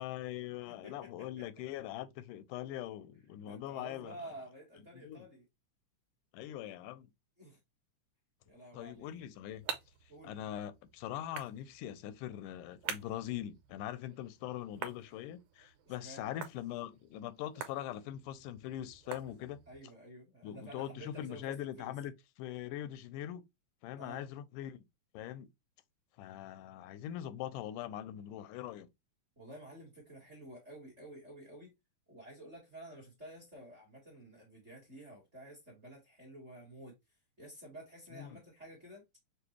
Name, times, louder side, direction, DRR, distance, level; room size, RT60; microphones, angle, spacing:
voice 1, 0.0-4.2 4.9-5.3 6.3-7.1 8.7-9.7 10.2-19.6 20.4-23.4 23.8-24.8 25.1-25.5 26.2-28.9 38.1-38.4, left 12 dB, 85° left, 2.1 m, -42 dB
voice 2, 0.6-1.5 3.4-5.4 7.4-7.6 8.5-9.2 10.1-10.3 15.8-16.3 19.7-21.9 24.0-24.2 29.4-31.7 32.1-36.9 37.4-39.0, right 1 dB, 30° right, 1.4 m, -51 dB
sound 1, 9.0-19.8, right 8 dB, 85° right, 2.2 m, -48 dB
6.7 x 2.3 x 3.0 m
omnidirectional pair, 3.6 m